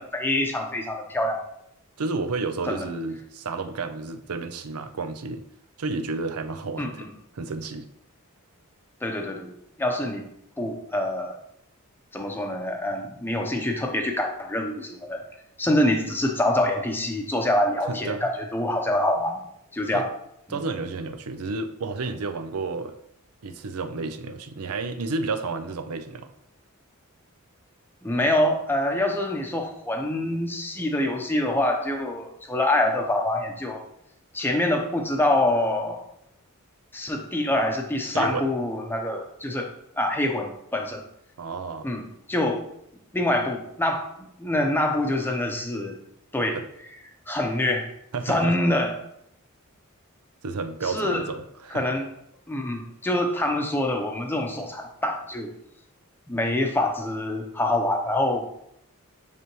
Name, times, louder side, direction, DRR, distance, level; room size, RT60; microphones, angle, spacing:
voice 1, 0.0-1.4 2.7-2.8 6.8-7.1 9.0-9.5 9.8-10.2 10.6-11.3 12.1-15.2 15.6-19.4 19.7-20.1 20.5-20.6 28.0-33.8 34.3-36.0 36.9-39.7 40.0-41.0 41.8-42.6 43.1-44.1 44.4-46.0 46.3-46.6 47.3-47.9 48.3-48.9 50.9-51.2 51.7-52.1 52.5-55.5 56.3-58.5, left 1 dB, 10° left, 2 dB, 0.7 m, -25 dB
voice 2, 2.0-5.4 5.8-7.1 7.3-7.9 17.9-18.3 19.9-20.1 20.5-23.0 23.4-26.3 38.1-38.5 41.4-41.9 46.5-46.6 48.1-48.5 50.4-51.8, right 3 dB, 80° right, 9 dB, 0.6 m, -31 dB
9.6 x 3.4 x 3.1 m, 0.75 s
head